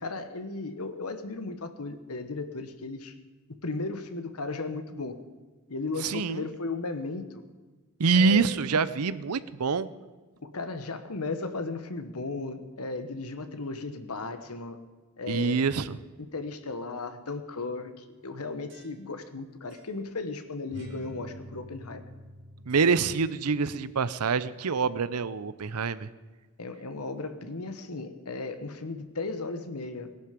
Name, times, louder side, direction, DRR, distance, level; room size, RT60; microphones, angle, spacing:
voice 1, 0.0-3.1 3.5-5.2 5.7-7.4 8.1-8.5 10.4-14.8 15.2-15.6 16.2-22.1 26.6-30.1, left 3 dB, 85° left, 9 dB, 1.3 m, -35 dB
voice 2, 6.0-6.5 8.0-9.9 15.3-16.0 22.7-26.1, right 5 dB, 90° right, 16 dB, 0.6 m, -26 dB
sound 1, 18.2-19.4 19.7-19.9 20.7-23.3, equal, 55° right, 3.3 m, -47 dB
19.0 x 11.5 x 5.2 m, 1.3 s
head